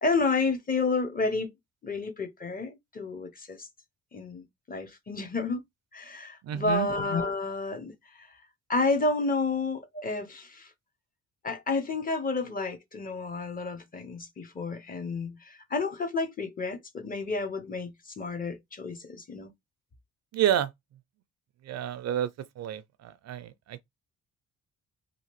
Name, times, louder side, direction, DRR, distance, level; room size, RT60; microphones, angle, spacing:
voice 1, 0.0-1.5 1.8-3.7 4.1-5.6 5.9-8.3 8.7-10.7 11.4-19.5, left 3 dB, 30° left, 0.7 m, -30 dB
voice 2, 6.4-6.9 20.3-20.7 21.6-22.3 22.6-23.8, right 10 dB, 60° right, 0.4 m, -29 dB
2.8 x 2.5 x 2.9 m
cardioid pair, 90°, 30 cm